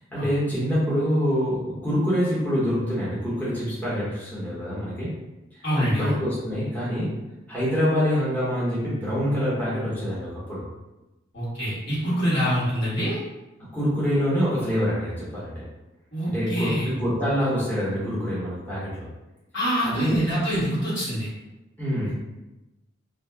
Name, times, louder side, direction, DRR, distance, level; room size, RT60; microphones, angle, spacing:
voice 1, 0.1-5.1 5.8-7.1 7.5-10.6 13.7-15.6 16.3-18.9 19.8-20.2 21.8-22.1, equal, 10° left, -10 dB, 0.9 m, -25 dB
voice 2, 5.6-6.1 11.3-13.2 16.1-16.9 19.5-21.3, equal, 70° left, -9 dB, 1.5 m, -25 dB
2.6 x 2.1 x 3.4 m, 1.0 s
head